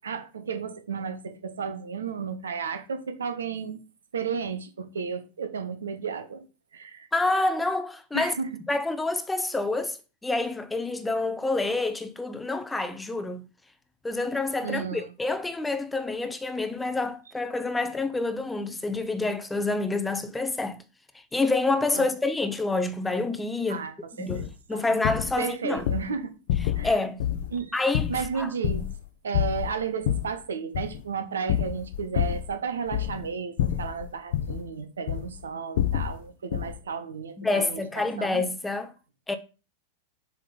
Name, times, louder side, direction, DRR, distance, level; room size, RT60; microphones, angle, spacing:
voice 1, 0.0-3.8 4.1-6.5 6.7-7.1 8.1-8.6 14.6-15.1 21.9-22.1 23.7-25.0 25.4-26.3 26.7-26.9 27.5-27.8 28.1-28.9 29.2-38.5, right 6 dB, 70° right, 0.8 m, -33 dB
voice 2, 7.1-8.3 8.7-10.0 10.2-13.4 14.0-20.8 21.3-23.9 24.2-25.9 26.8-27.2 27.7-28.1 28.4-28.5 37.4-38.9 39.3-39.4, left 3 dB, 10° left, 0.6 m, -27 dB
sound 1, 24.3-24.5 25.0-25.4 25.8-26.1 26.5-26.9 27.2-27.5 27.9-29.0 29.3-30.3 30.7-31.0 31.5-32.5 32.9-33.3 33.6-34.6 35.1-35.4 35.8-36.2 36.5-36.8, left 11 dB, 55° left, 0.7 m, -28 dB
7.4 x 3.6 x 3.7 m
figure-of-eight pair, 90°, 0 cm